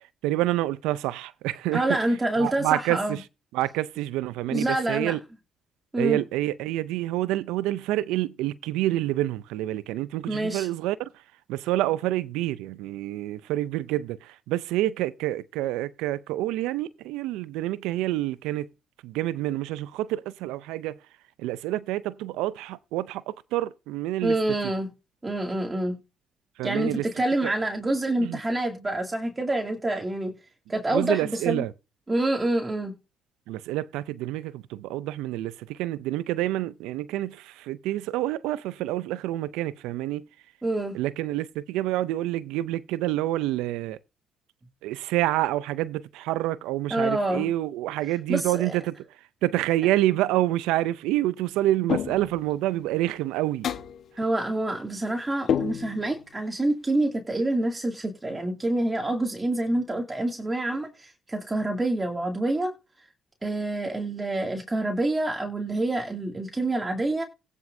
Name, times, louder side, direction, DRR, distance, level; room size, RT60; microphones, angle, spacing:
voice 1, 0.2-2.0 2.4-3.2 3.5-5.2 5.9-11.2 11.5-18.7 19.0-21.0 21.4-24.4 26.6-27.1 27.4-27.5 28.2-28.4 30.9-31.7 33.5-40.3 40.9-44.0 44.8-53.7, right 15 dB, 85° right, 0.4 m, -28 dB
voice 2, 1.7-3.2 4.5-5.2 5.9-6.2 10.3-10.7 24.2-24.9 25.2-25.9 26.6-30.3 30.7-31.2 31.5-31.6 32.1-32.9 40.6-40.9 46.9-47.5 48.3-48.8 54.2-62.7 63.4-67.2, right 2 dB, 20° right, 2.3 m, -27 dB
sound 1, 51.9-52.5 53.6-54.1 55.5-56.2, left 8 dB, 65° left, 1.1 m, -28 dB
17.0 x 6.0 x 2.6 m
supercardioid pair, 70°, 0 cm